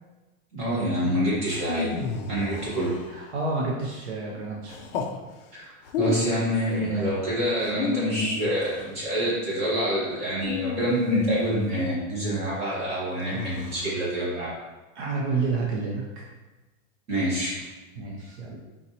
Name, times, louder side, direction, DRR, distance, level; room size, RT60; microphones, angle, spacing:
voice 1, 0.5-1.9 2.3-2.9 5.5-14.5 17.1-17.6, equal, 15° right, -8 dB, 1.0 m, -26 dB
sound 1, 1.4-3.4 4.7-5.2 5.8-6.5 7.6-8.9 10.4-11.6 13.2-14.0, left 4 dB, 45° left, 0.4 m, -32 dB
voice 2, 3.1-4.8 6.6-7.1 14.9-16.0 18.0-18.6, right 3 dB, 50° right, -2 dB, 0.7 m, -29 dB
4.2 x 3.7 x 2.8 m, 1.1 s
supercardioid pair, 175°, 43 cm